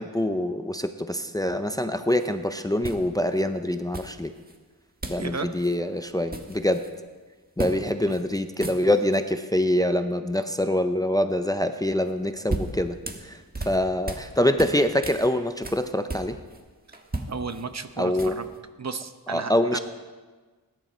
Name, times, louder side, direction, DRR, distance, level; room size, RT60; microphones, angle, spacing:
voice 1, 0.0-4.3 5.1-6.8 7.6-16.4 18.0-18.4 19.3-19.8, left 1 dB, 10° left, 9 dB, 0.6 m, -25 dB
sound 1, 2.1-2.3 2.8-3.4 3.9-4.6 5.0-5.3 5.6-5.7 6.1-6.9 7.6-7.8 8.1-8.2 8.5-9.2 12.1-14.3 14.6-16.6 16.9-18.6, right 2 dB, 25° right, 1.4 m, -35 dB
voice 2, 5.2-5.5 8.0-8.2 17.3-18.5 18.8-19.8, right 4 dB, 45° right, 9 dB, 0.9 m, -34 dB
20.0 x 10.5 x 4.4 m, 1.4 s
wide cardioid pair, 100°, 37 cm